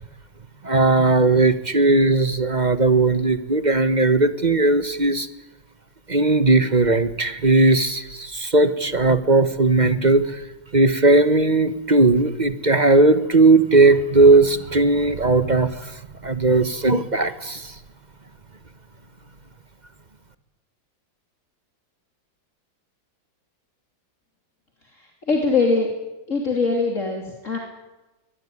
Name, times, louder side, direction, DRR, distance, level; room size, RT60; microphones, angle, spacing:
voice 1, 0.6-5.3 6.1-10.4 10.7-15.9 16.2-17.7, right 3 dB, 25° right, 12 dB, 1.2 m, -17 dB
voice 2, 25.3-25.9 26.3-27.6, left 3 dB, 40° left, 1 dB, 3.5 m, -21 dB
23.0 x 20.5 x 9.8 m, 1.1 s
omnidirectional pair, 2.0 m